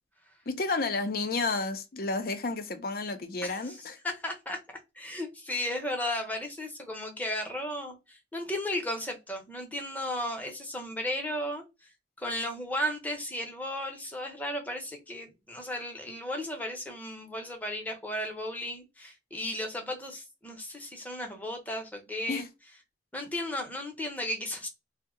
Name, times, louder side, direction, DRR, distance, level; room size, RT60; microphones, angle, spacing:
voice 1, 0.5-4.0 22.3-22.5, left 3 dB, 55° left, 0.5 m, -31 dB
voice 2, 3.4-4.6 4.9-11.9 12.2-22.4 23.1-24.7, left 1 dB, 10° left, 0.7 m, -35 dB
2.7 x 2.1 x 3.6 m
head